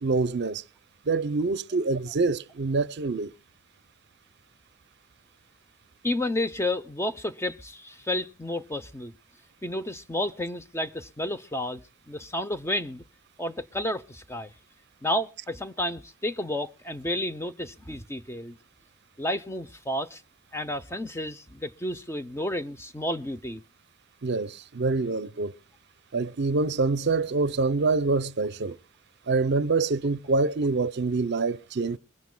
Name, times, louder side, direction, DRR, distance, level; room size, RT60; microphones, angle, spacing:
voice 1, 0.0-0.6 1.1-3.3 24.2-25.5 26.1-28.8 29.3-32.0, right 3 dB, 55° right, 0.6 m, -26 dB
voice 2, 6.0-9.1 9.6-13.0 13.4-14.5 15.0-18.6 19.2-20.2 20.5-23.6, left 1 dB, 10° left, 0.6 m, -31 dB
22.5 x 15.5 x 2.2 m
head